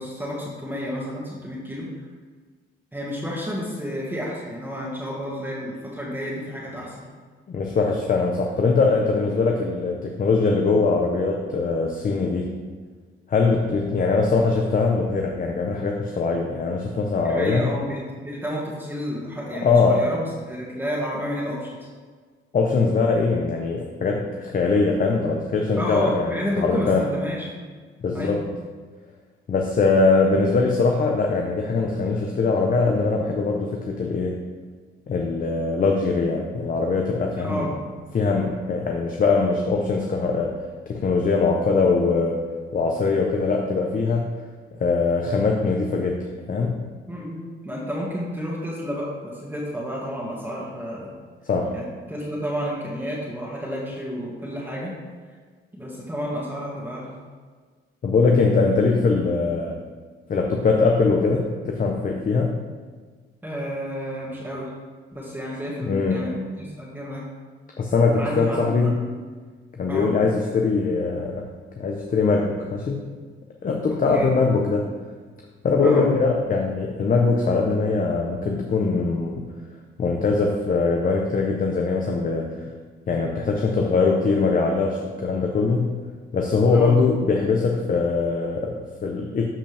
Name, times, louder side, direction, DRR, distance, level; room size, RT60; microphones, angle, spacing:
voice 1, 0.0-1.9 2.9-7.1 17.2-21.8 25.8-27.5 28.1-28.4 37.4-37.8 47.1-51.2 51.7-54.9 55.7-57.2 63.4-64.7 65.1-67.2 68.2-69.1 69.9-70.1 73.9-74.3 75.8-76.1 86.7-86.9, equal, 10° right, -6 dB, 2.0 m, -31 dB
voice 2, 7.5-12.5 13.3-17.7 19.6-20.1 22.5-27.1 28.0-28.5 29.5-34.4 35.1-37.7 38.1-40.5 40.9-42.4 42.7-44.3 44.8-46.2 46.5-46.8 51.5-51.7 58.0-59.8 60.3-62.5 65.9-66.3 67.8-69.0 69.7-71.5 71.8-73.1 73.6-75.0 75.6-79.4 80.0-82.6 83.1-85.9 86.3-89.5, left 4 dB, 45° left, 1 dB, 0.9 m, -22 dB
12.5 x 5.2 x 3.5 m, 1.5 s
cardioid pair, 90°, 20 cm